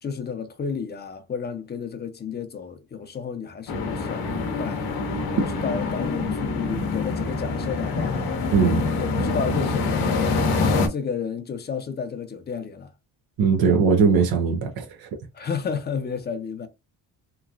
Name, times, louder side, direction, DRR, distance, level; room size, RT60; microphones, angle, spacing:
voice 1, 0.0-4.9 5.4-8.3 9.0-10.2 10.9-12.9 15.3-16.7, left 6 dB, 25° left, 0.6 m, -32 dB
sound 1, 3.7-10.9, left 3 dB, 75° left, 0.8 m, -25 dB
voice 2, 8.5-8.9 13.4-15.1, right 5 dB, 70° right, 0.7 m, -20 dB
3.0 x 2.3 x 2.4 m
cardioid pair, 105°, 37 cm